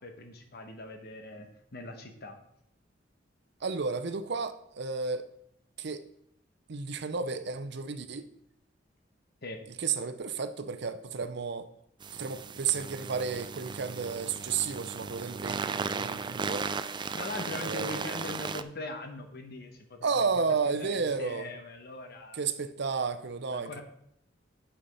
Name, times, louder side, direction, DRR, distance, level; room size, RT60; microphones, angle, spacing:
voice 1, 0.0-2.4 9.4-9.6 17.1-22.4 23.5-23.8, left 2 dB, 55° left, 1.1 m, -41 dB
voice 2, 3.6-5.3 5.8-6.0 6.7-8.3 9.8-11.7 12.1-16.6 17.6-18.1 20.0-21.5 22.3-23.8, right 5 dB, 65° right, 0.6 m, -32 dB
sound 1, 12.0-18.6, right 5 dB, 25° right, 0.4 m, -36 dB
8.6 x 5.7 x 5.4 m
head